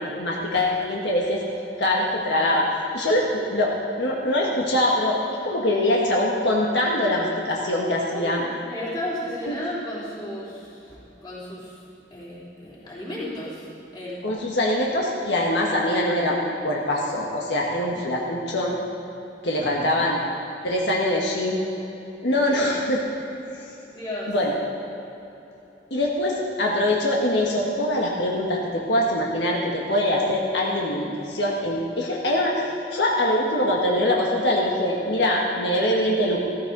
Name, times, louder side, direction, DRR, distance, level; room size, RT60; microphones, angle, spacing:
voice 1, 0.0-1.4 1.8-2.7 2.9-8.4 9.5-9.6 14.2-18.8 19.4-20.2 20.6-21.6 22.2-23.0 24.3-24.6 25.9-32.6 32.9-36.4, left 1 dB, 75° left, -2 dB, 1.6 m, -23 dB
voice 2, 8.1-11.8 12.1-13.7 13.9-14.2 17.9-18.0 19.6-20.4 23.8-24.3, left 1 dB, 25° left, -8 dB, 3.6 m, -34 dB
14.5 x 14.5 x 4.0 m, 3.0 s
head